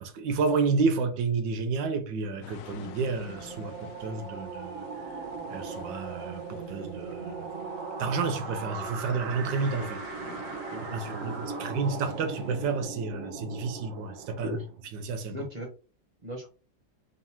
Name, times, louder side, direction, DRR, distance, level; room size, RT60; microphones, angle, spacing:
voice 1, 0.0-5.2 5.5-7.5 8.0-10.0 10.9-14.6 14.9-15.4, right 4 dB, 75° right, 1.4 m, -30 dB
sound 1, 2.4-12.8, left 7 dB, 80° left, 0.7 m, -49 dB
sound 2, 2.4-14.8, right 4 dB, 55° right, 1.1 m, -39 dB
voice 2, 10.4-11.8 14.4-14.7 15.3-15.7 16.2-16.5, equal, 35° right, 0.7 m, -39 dB
3.8 x 3.7 x 2.8 m
omnidirectional pair, 2.0 m